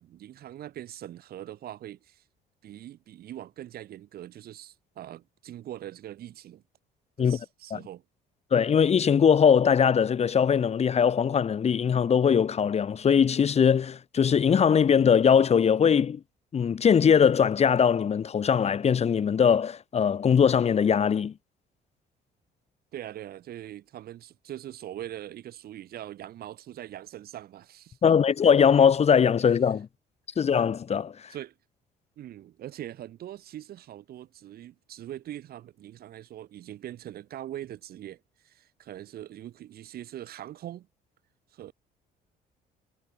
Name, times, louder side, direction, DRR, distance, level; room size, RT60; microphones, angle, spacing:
voice 1, 0.0-2.2 2.6-6.6 7.2-8.0 22.9-28.0 31.3-31.5 32.2-40.9 41.5-41.7, right 12 dB, 65° right, 6.4 m, -42 dB
voice 2, 8.5-16.2 16.5-21.3 28.0-29.9 30.4-31.3, left 7 dB, 40° left, 2.1 m, -21 dB
cardioid pair, 110°, 17 cm